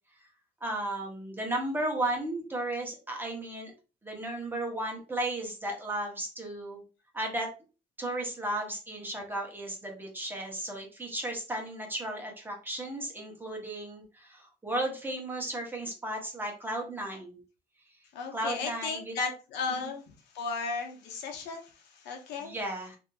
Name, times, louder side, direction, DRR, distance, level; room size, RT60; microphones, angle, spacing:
voice 1, 0.6-3.7 4.0-6.8 7.1-7.5 8.0-17.4 18.3-19.1 19.8-19.9 22.4-23.0, right 1 dB, 10° right, 0 dB, 0.9 m, -34 dB
voice 2, 18.1-20.0 20.3-22.5, left 4 dB, 85° left, 2 dB, 0.8 m, -35 dB
2.7 x 2.6 x 2.3 m, 0.33 s
cardioid pair, 110°, 17 cm